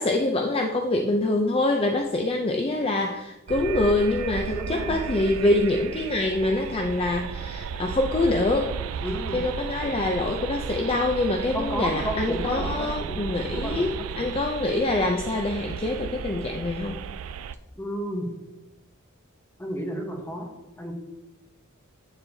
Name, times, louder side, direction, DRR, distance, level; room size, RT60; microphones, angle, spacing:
voice 1, 0.0-8.7 9.3-17.0, left 2 dB, 25° left, 3 dB, 0.4 m, -25 dB
sound 1, 3.5-17.5, right 7 dB, 75° right, 0.3 m, -34 dB
voice 2, 4.5-5.3 9.0-9.4 11.5-13.2 13.5-14.4 17.8-18.3 19.6-20.5 20.8-20.9, equal, 10° left, 1 dB, 1.1 m, -32 dB
8.6 x 6.9 x 2.7 m, 1.0 s
head